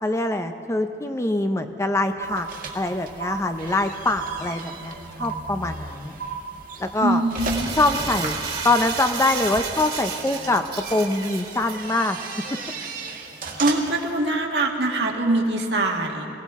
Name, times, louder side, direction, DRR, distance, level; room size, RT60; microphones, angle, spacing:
voice 1, 0.0-2.5 2.7-6.1 6.8-7.2 7.8-8.4 8.6-10.6 10.9-12.2, left 2 dB, 15° left, 7 dB, 0.5 m, -24 dB
sound 1, 2.2-14.1, right 3 dB, 50° right, 1.7 m, -37 dB
sound 2, 2.2-2.9 3.2-3.9 4.2-4.9 5.2-5.9 6.2-6.9, right 6 dB, 90° right, 2.9 m, -35 dB
voice 2, 7.0-7.8 13.6-16.3, right 2 dB, 65° right, 1 dB, 1.6 m, -23 dB
Crumpling crinkling, 7.3-11.8, right 5 dB, 30° right, 1.5 m, -31 dB
23.0 x 17.5 x 3.6 m, 2.9 s
head